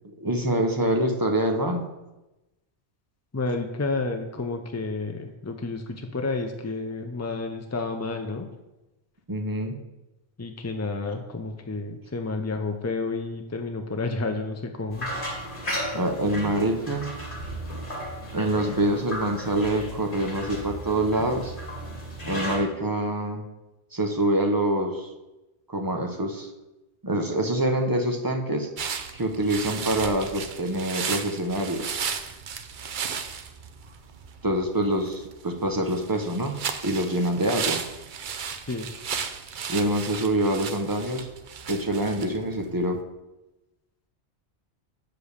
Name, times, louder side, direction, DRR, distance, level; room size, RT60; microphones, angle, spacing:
voice 1, 0.2-1.9 9.3-9.7 15.9-17.1 18.3-21.5 22.3-23.4 23.9-25.1 25.7-26.5 27.0-28.7 29.1-31.9 34.4-36.6 36.8-37.8 39.7-41.3 41.7-43.0, right 1 dB, 20° right, 3 dB, 0.8 m, -25 dB
voice 2, 3.3-8.5 10.4-15.1 38.7-38.9, left 3 dB, 25° left, 5 dB, 0.3 m, -30 dB
sound 1, 14.9-22.6, equal, 50° left, 2.2 m, -34 dB
sound 2, 28.8-43.0, right 6 dB, 55° right, 0.7 m, -35 dB
7.0 x 5.2 x 6.5 m, 1.0 s
omnidirectional pair, 1.1 m